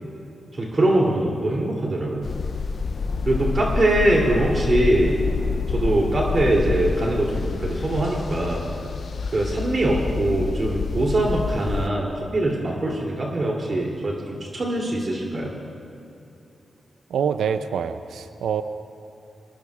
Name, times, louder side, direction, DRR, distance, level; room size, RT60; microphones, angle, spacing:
voice 1, 0.5-2.3 3.2-5.2 5.7-8.6 9.3-15.5, right 1 dB, 50° right, -2 dB, 2.8 m, -22 dB
sound 1, 2.2-11.9, left 4 dB, 60° left, 0.5 m, -27 dB
voice 2, 17.1-18.6, right 7 dB, 85° right, 10 dB, 0.4 m, -25 dB
23.5 x 18.5 x 2.4 m, 2.8 s
supercardioid pair, 45°, 0 cm